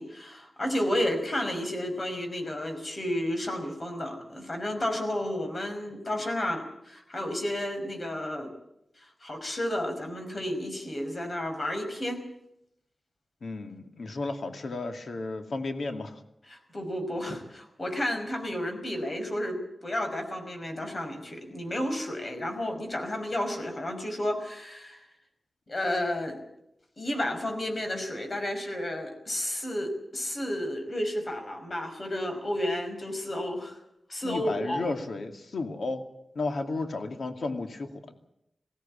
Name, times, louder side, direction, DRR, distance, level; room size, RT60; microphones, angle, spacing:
voice 1, 0.0-8.5 9.0-12.2 16.5-25.1 25.7-26.4 27.0-33.8 34.1-34.8, left 1 dB, 45° left, 5 dB, 5.5 m, -32 dB
voice 2, 13.4-16.2 34.2-36.0 36.3-38.2, left 3 dB, 80° left, 6 dB, 2.4 m, -33 dB
21.0 x 16.5 x 8.7 m, 0.81 s
wide cardioid pair, 85°, 0 cm